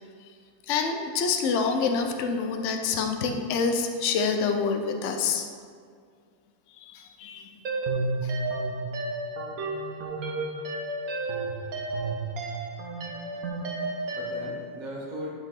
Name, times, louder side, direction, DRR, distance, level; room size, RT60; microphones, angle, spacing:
voice 1, 0.7-5.5 6.8-7.5 8.2-8.3, left 5 dB, 70° left, 5 dB, 0.7 m, -27 dB
sound 1, 7.6-14.5, right 2 dB, 55° right, 1.3 m, -31 dB
voice 2, 13.3-15.3, equal, 30° right, -3 dB, 1.1 m, -40 dB
11.0 x 5.8 x 3.7 m, 2.1 s
omnidirectional pair, 2.1 m